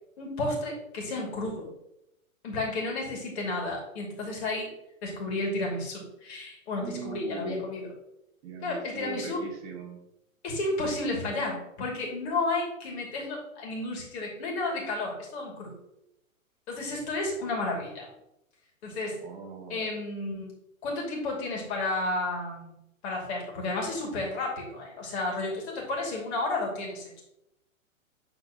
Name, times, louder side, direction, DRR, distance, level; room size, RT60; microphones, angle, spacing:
voice 1, 0.2-1.7 2.4-4.7 5.0-7.9 8.6-9.4 10.4-15.7 16.7-18.1 18.8-19.2 19.7-20.5 20.8-22.7 23.0-27.2, left 2 dB, 50° left, -1 dB, 2.5 m, -32 dB
voice 2, 6.8-7.7 8.4-10.0 19.2-19.9, right 5 dB, 45° right, 4 dB, 2.0 m, -39 dB
10.5 x 4.0 x 2.9 m, 0.83 s
hypercardioid pair, 130°, 42 cm